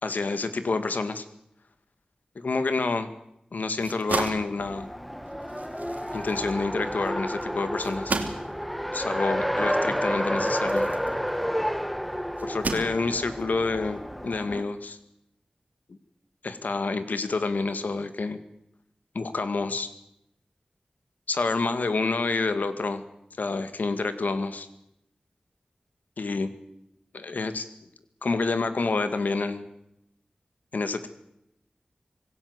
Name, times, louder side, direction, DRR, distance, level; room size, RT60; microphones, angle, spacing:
voice 1, 0.0-1.3 2.4-3.1 3.5-4.9 6.1-8.2 8.9-10.9 12.4-15.0 15.9-16.0 16.4-18.4 19.1-19.9 21.3-23.0 23.4-24.7 26.2-26.5 27.1-27.7 28.2-29.7 30.7-31.1, left 3 dB, 85° left, 10 dB, 2.1 m, -28 dB
sound 1, 3.6-11.7 12.4-13.4, right 3 dB, 80° right, 2.9 m, -35 dB
Race car auto racing, 4.6-14.6, equal, 5° left, 1.5 m, -30 dB
26.5 x 17.5 x 8.1 m, 0.81 s
wide cardioid pair, 85°, 3 cm